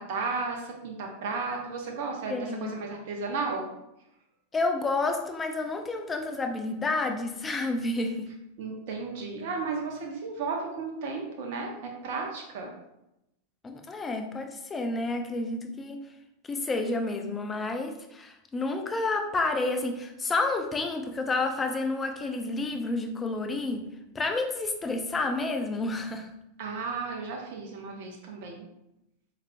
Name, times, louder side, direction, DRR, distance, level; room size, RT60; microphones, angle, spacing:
voice 1, 0.0-3.7 8.6-12.7 26.6-28.7, right 4 dB, 60° right, 1 dB, 0.6 m, -34 dB
voice 2, 2.3-2.7 4.5-8.3 13.6-16.0 16.4-23.8 24.1-26.3, left 2 dB, 20° left, 5 dB, 0.6 m, -30 dB
4.0 x 3.1 x 2.6 m, 0.87 s
hypercardioid pair, 95°, 0 cm